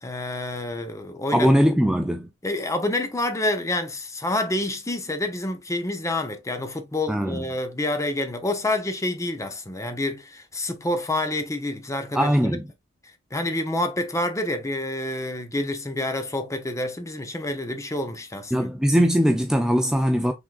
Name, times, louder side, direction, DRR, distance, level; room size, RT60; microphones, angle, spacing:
voice 1, 0.0-1.5 2.4-12.5 13.3-18.7, left 1 dB, 15° left, 0.8 m, -28 dB
voice 2, 1.3-2.3 7.1-7.5 12.1-12.7 18.5-20.3, equal, 5° right, 0.4 m, -20 dB
6.0 x 3.7 x 2.4 m
head